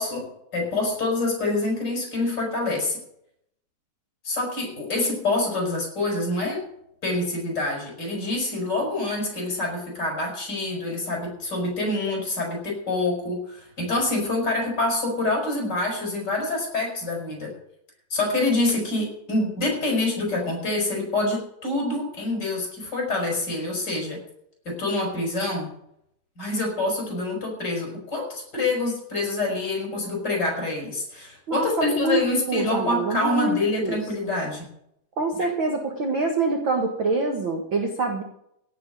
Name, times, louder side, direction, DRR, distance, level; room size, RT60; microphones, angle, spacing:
voice 1, 0.0-3.0 4.2-6.6 7.0-17.5 18.1-24.2 24.6-25.7 26.4-34.7 35.4-35.5, left 2 dB, 25° left, 0 dB, 6.4 m, -26 dB
voice 2, 31.5-32.2 32.5-34.0 35.2-38.2, right 3 dB, 45° right, 2 dB, 1.8 m, -25 dB
17.0 x 6.9 x 7.9 m, 0.74 s
omnidirectional pair, 4.3 m